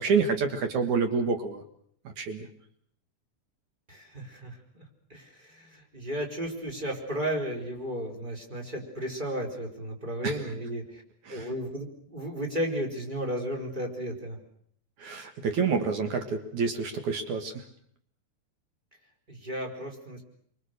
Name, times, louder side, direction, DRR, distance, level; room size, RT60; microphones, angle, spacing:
voice 1, 0.0-1.6 2.0-2.5 10.2-10.4 11.3-11.5 15.0-17.5, right 5 dB, 60° right, 6 dB, 2.9 m, -28 dB
voice 2, 3.9-4.5 5.1-11.0 11.3-14.4 19.3-20.2, equal, 10° right, 1 dB, 4.1 m, -34 dB
27.5 x 24.5 x 6.6 m, 0.66 s
omnidirectional pair, 4.2 m